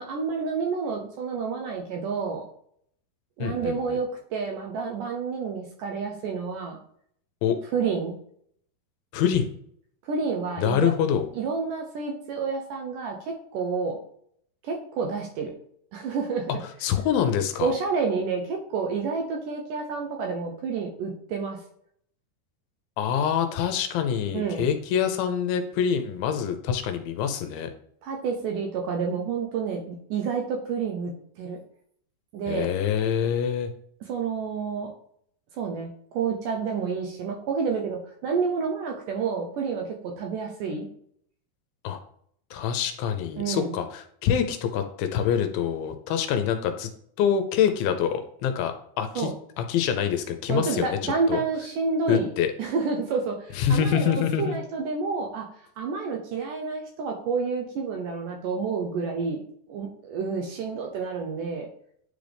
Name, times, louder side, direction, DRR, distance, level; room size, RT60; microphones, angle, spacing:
voice 1, 0.0-2.5 3.4-6.8 7.7-8.1 10.0-10.9 11.3-14.0 14.6-15.5 15.9-16.5 17.6-21.6 24.3-24.7 28.0-31.1 31.4-31.6 32.3-32.7 34.1-34.9 35.5-40.9 43.4-43.8 49.2-49.3 50.5-52.3 52.6-55.5 55.8-59.4 59.7-61.7, right 5 dB, 75° right, 2 dB, 2.0 m, -29 dB
voice 2, 3.4-4.0 7.4-7.6 9.1-9.5 10.6-11.3 16.8-17.7 23.0-27.7 32.5-33.7 41.8-42.0 42.5-46.9 47.2-49.3 49.6-51.4 52.1-52.5 53.5-54.6, left 8 dB, 80° left, 7 dB, 2.3 m, -25 dB
9.5 x 3.9 x 3.4 m, 0.65 s
omnidirectional pair, 4.4 m